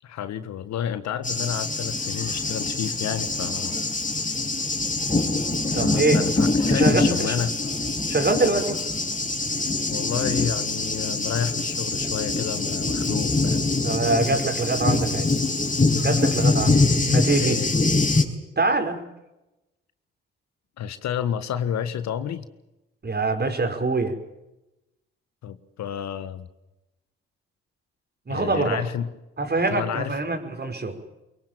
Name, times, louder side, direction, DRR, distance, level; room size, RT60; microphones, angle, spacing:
voice 1, 0.0-3.8 5.7-7.6 9.9-13.6 17.4-17.7 20.8-22.5 25.4-26.5 28.3-29.1 29.7-30.2, left 9 dB, 65° left, 12 dB, 1.6 m, -30 dB
Thunder, 1.2-18.2, left 3 dB, 25° left, 5.3 m, -24 dB
voice 2, 5.7-6.2 6.7-7.4 8.1-8.8 13.8-15.3 16.0-16.8 17.1-17.6 18.6-19.0 23.0-24.2 28.3-28.8 29.4-31.0, right 3 dB, 35° right, 6 dB, 5.1 m, -24 dB
23.5 x 23.0 x 9.0 m, 0.97 s
hypercardioid pair, 45°, 30 cm